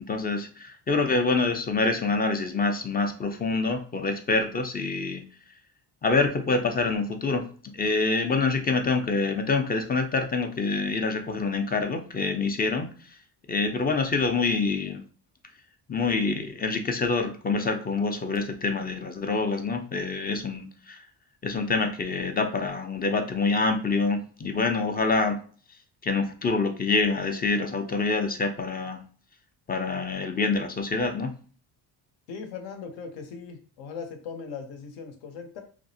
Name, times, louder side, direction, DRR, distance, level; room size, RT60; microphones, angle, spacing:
voice 1, 0.1-5.2 6.0-7.4 7.8-12.9 13.5-15.0 15.9-21.0 21.4-25.4 26.0-29.0 29.7-31.3, left 3 dB, 20° left, 6 dB, 0.3 m, -26 dB
voice 2, 32.3-35.6, left 5 dB, 75° left, 6 dB, 0.7 m, -39 dB
2.5 x 2.0 x 2.6 m, 0.41 s
supercardioid pair, 65°, 46 cm